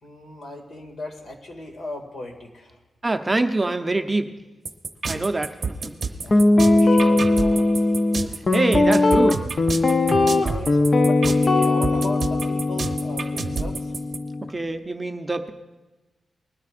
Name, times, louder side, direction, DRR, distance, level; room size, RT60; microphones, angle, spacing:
voice 1, 0.0-2.8 6.2-7.7 9.9-10.0 10.4-13.9, left 2 dB, 55° left, 2 dB, 2.1 m, -37 dB
voice 2, 3.0-4.3 5.1-5.5 5.8-5.9 8.5-9.5 14.5-15.5, right 2 dB, 15° right, 6 dB, 0.6 m, -24 dB
sound 1, 4.6-14.2, right 4 dB, 40° right, 0.8 m, -29 dB
Guitar, 6.3-14.5, left 2 dB, 30° left, 0.6 m, -19 dB
20.5 x 13.0 x 2.5 m, 1.1 s
wide cardioid pair, 160°, 0 cm